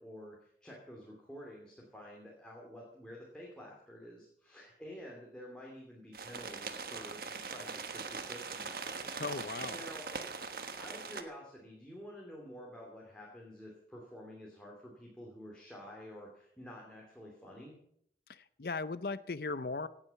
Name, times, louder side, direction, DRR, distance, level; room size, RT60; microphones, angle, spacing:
voice 1, 0.0-9.0 9.3-10.1 10.8-17.8, equal, 5° left, -3 dB, 2.8 m, -50 dB
sound 1, 6.1-11.2, right 4 dB, 55° right, 1.3 m, -41 dB
voice 2, 9.1-9.8 18.3-19.9, left 3 dB, 60° left, 14 dB, 0.6 m, -38 dB
17.5 x 8.8 x 7.0 m, 0.69 s
head